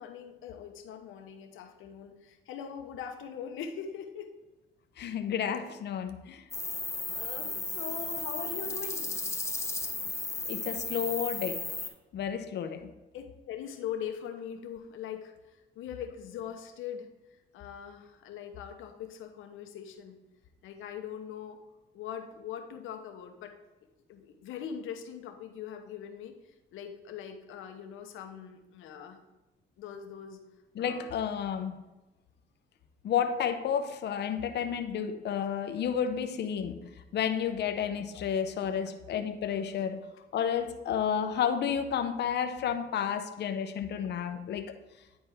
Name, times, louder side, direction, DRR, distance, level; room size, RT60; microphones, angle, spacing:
voice 1, 0.0-4.3 7.1-9.1 13.1-17.1 17.5-20.2 20.6-21.6 21.9-23.6 24.1-29.2 29.8-30.4 30.8-31.2, left 8 dB, 85° left, 5 dB, 0.9 m, -41 dB
voice 2, 5.0-6.4 10.5-11.6 12.1-12.9 30.8-31.8 33.0-36.8 37.1-40.0 40.3-44.7, left 8 dB, 60° left, 7 dB, 0.6 m, -31 dB
sound 1, 6.5-11.9, left 3 dB, 15° left, 0.9 m, -35 dB
9.6 x 4.4 x 3.5 m, 1.1 s
cardioid pair, 90°, 20 cm